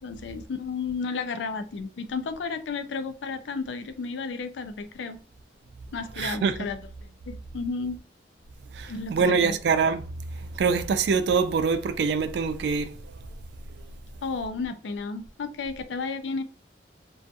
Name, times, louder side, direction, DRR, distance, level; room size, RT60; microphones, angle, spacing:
voice 1, 0.0-5.2 5.9-6.8 7.3-8.0 8.9-9.6 14.2-16.4, left 4 dB, 85° left, 0.4 m, -32 dB
voice 2, 6.2-6.6 8.7-10.1 10.4-13.0, right 5 dB, 65° right, 0.3 m, -24 dB
2.4 x 2.3 x 2.6 m
head